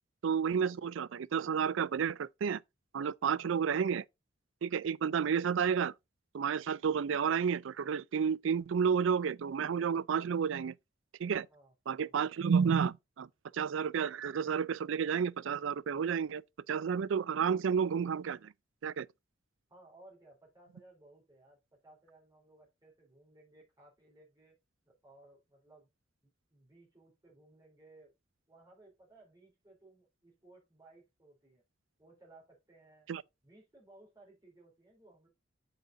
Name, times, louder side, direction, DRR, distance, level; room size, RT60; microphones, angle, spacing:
voice 1, 0.2-2.6 2.9-4.0 4.6-5.9 6.3-10.7 11.2-11.5 11.9-13.3 13.5-16.4 16.7-18.5 18.8-19.1 33.1-33.2, right 7 dB, 70° right, 0.4 m, -31 dB
voice 2, 19.7-24.6 24.9-25.9 26.2-28.1 28.5-31.6 32.0-33.1 33.4-35.3, right 2 dB, 20° right, 3.5 m, -60 dB
8.2 x 6.6 x 2.5 m
head